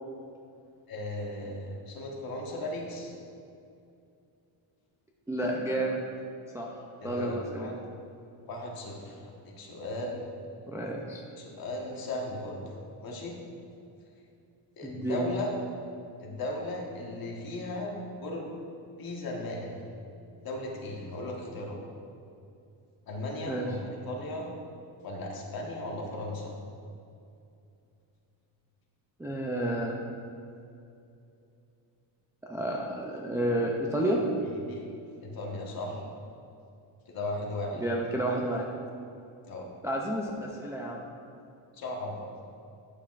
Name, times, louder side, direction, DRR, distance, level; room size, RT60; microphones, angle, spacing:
voice 1, 0.9-3.1 7.0-7.7 8.5-10.2 11.4-12.6 13.0-13.4 14.8-15.5 16.2-17.9 18.2-18.5 19.0-19.8 20.4-21.8 23.1-24.5 25.0-26.5 34.0-34.2 34.7-34.8 35.2-36.0 37.0-37.8 39.5-39.7 41.7-42.3, left 1 dB, 50° left, -1 dB, 1.4 m, -36 dB
voice 2, 5.3-6.0 6.5-6.7 7.0-7.7 10.7-11.2 14.8-15.2 23.5-23.7 29.2-30.0 32.5-34.2 37.8-38.7 39.8-41.1, right 1 dB, 5° right, -2 dB, 0.4 m, -30 dB
9.8 x 6.6 x 2.5 m, 2.6 s
cardioid pair, 140°, 46 cm